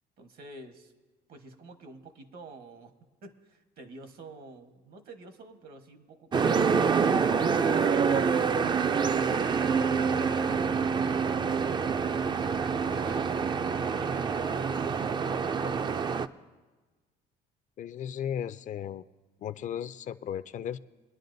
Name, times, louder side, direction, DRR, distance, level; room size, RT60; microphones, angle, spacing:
voice 1, 0.2-0.9 1.3-2.9 3.2-7.8 12.9-13.3 14.0-16.0, right 3 dB, 60° right, 7 dB, 1.3 m, -48 dB
sound 1, 6.3-16.3, right 6 dB, 25° right, 0.4 m, -26 dB
voice 2, 17.8-19.0 19.4-20.8, left 9 dB, 45° left, 13 dB, 0.4 m, -35 dB
22.5 x 10.5 x 2.6 m, 1.3 s
cardioid pair, 110°, 17 cm